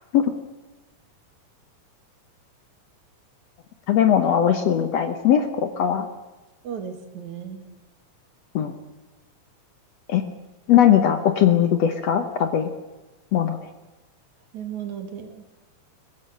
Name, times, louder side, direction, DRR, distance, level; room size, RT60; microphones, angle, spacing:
voice 1, 3.9-6.1 8.6-8.7 10.1-10.2 10.7-12.7 13.3-13.6, left 9 dB, 65° left, 8 dB, 1.9 m, -19 dB
voice 2, 6.6-7.7 14.5-15.4, right 8 dB, 60° right, 6 dB, 3.3 m, -35 dB
22.0 x 20.0 x 6.6 m, 1.1 s
omnidirectional pair, 3.8 m